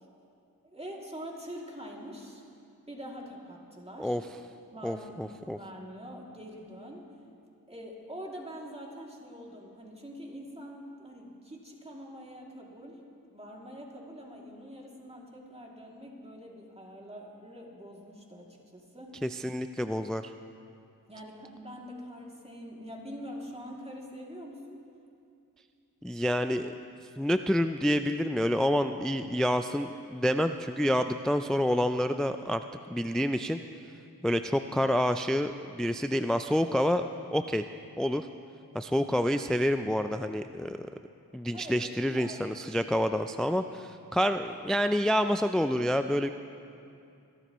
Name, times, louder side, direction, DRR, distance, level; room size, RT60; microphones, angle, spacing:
voice 1, 0.6-2.4 2.9-4.2 4.7-7.0 7.7-13.0 13.3-19.2 21.1-24.8 41.5-42.4, equal, 15° right, -2 dB, 2.6 m, -44 dB
voice 2, 4.8-5.6 19.2-20.3 26.0-26.7 27.2-32.6 32.9-33.6 34.2-37.0 37.3-37.7 38.0-38.3 38.7-40.9 41.3-46.3, equal, ahead, 9 dB, 0.4 m, -28 dB
22.0 x 12.5 x 3.1 m, 2.5 s
cardioid pair, 45°, 36 cm